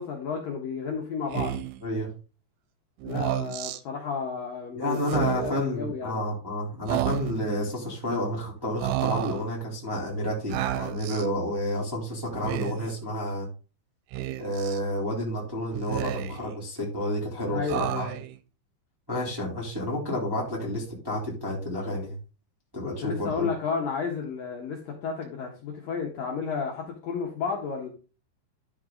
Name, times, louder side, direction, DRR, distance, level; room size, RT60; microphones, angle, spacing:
voice 1, 0.0-1.6 3.0-6.2 17.5-18.2 22.8-27.9, left 5 dB, 65° left, 0 dB, 2.5 m, -32 dB
Speech, 1.3-1.8 3.0-3.8 5.0-5.7 6.9-7.6 8.8-9.5 10.5-11.3 12.3-13.0 14.1-14.8 15.7-16.5 17.7-18.4, right 13 dB, 90° right, 3.3 m, -31 dB
voice 2, 4.7-13.5 14.4-18.1 19.1-22.2 22.7-23.5, left 1 dB, 5° right, -3 dB, 2.1 m, -30 dB
11.5 x 6.0 x 3.8 m, 0.34 s
omnidirectional pair, 5.5 m